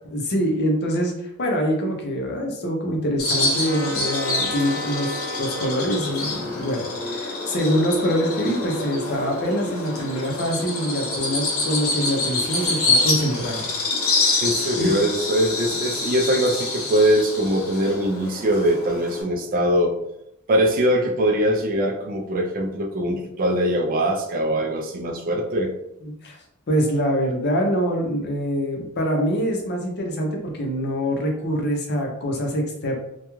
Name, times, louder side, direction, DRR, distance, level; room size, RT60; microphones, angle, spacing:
voice 1, 0.1-13.7 14.1-14.4 14.8-15.0 26.0-26.4 26.7-33.0, equal, 50° left, 1 dB, 0.6 m, -25 dB
Bird vocalization bird call bird song, 3.2-19.2, left 2 dB, 90° left, 0.9 m, -26 dB
Trumpet, 3.6-9.1, equal, 30° left, 1.0 m, -38 dB
voice 2, 14.4-19.9 20.5-25.7, equal, 40° right, 3 dB, 0.4 m, -22 dB
2.3 x 2.2 x 3.0 m, 0.81 s
head